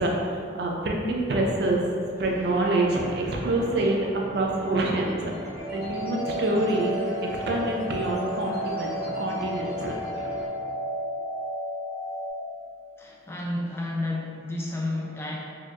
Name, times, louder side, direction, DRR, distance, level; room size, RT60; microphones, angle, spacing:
voice 1, 0.0-1.8 2.2-5.3 5.7-6.9 7.2-10.3, right 2 dB, 60° right, -1 dB, 0.4 m, -26 dB
sound 1, 2.1-10.5, equal, 10° right, 1.1 m, -42 dB
sound 2, 5.6-12.3, equal, 85° left, 1.2 m, -32 dB
voice 2, 13.0-15.4, left 2 dB, 15° left, -2 dB, 0.3 m, -31 dB
4.3 x 2.4 x 2.4 m, 2.4 s
head